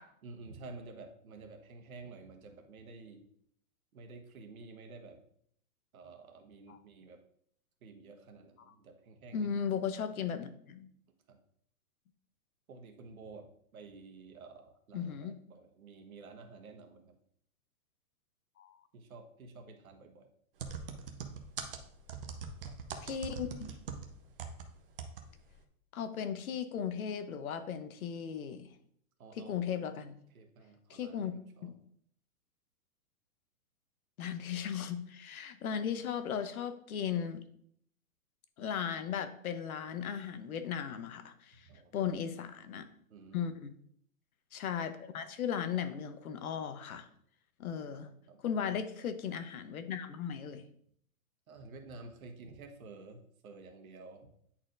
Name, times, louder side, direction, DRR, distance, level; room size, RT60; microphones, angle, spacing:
voice 1, 0.2-3.2 3.9-5.2 5.9-7.2 7.8-9.5 11.3-11.4 12.7-13.5 13.7-17.1 18.9-20.3 29.2-29.7 30.3-31.7 41.7-42.1 43.1-43.5 47.9-48.4 51.5-54.3, right 3 dB, 70° right, 4 dB, 1.3 m, -51 dB
voice 2, 9.3-10.9 14.9-15.4 18.6-18.8 23.0-23.8 25.9-28.7 29.4-30.1 30.9-31.3 31.6-31.7 34.2-37.4 38.6-41.7 41.9-42.9 43.3-43.7 44.5-47.1 47.6-48.1 48.4-50.6, left 8 dB, 70° left, 9 dB, 0.9 m, -36 dB
sound 1, 20.6-24.6 25.0-25.2 25.5-25.6, right 6 dB, 40° right, 0.6 m, -41 dB
9.8 x 4.3 x 2.5 m, 0.66 s
hypercardioid pair, 170°, 44 cm